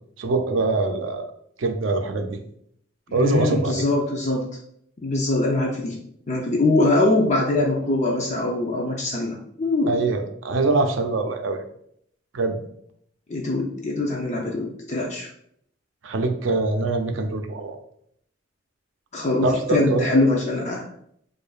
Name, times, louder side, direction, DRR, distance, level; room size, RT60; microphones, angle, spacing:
voice 1, 0.2-1.3 1.6-2.4 3.1-3.9 9.9-11.6 12.3-12.6 16.0-17.8 19.4-20.1, right 3 dB, 90° right, 5 dB, 0.5 m, -23 dB
voice 2, 3.1-4.5 5.0-6.0 6.3-10.0 13.3-15.3 19.1-20.8, left 2 dB, 40° left, -1 dB, 0.5 m, -22 dB
4.8 x 2.5 x 2.4 m, 0.69 s
head